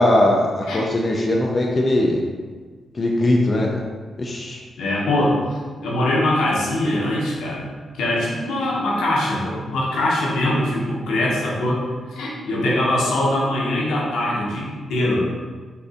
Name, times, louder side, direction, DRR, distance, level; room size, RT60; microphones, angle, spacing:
voice 1, 0.0-2.2 2.9-3.7 4.2-4.6, left 1 dB, 40° left, -1 dB, 0.4 m, -19 dB
voice 2, 4.8-5.6 5.8-7.7 8.0-15.3, left 1 dB, 80° left, -5 dB, 0.8 m, -22 dB
4.1 x 2.6 x 2.5 m, 1.5 s
supercardioid pair, 45°, 0 cm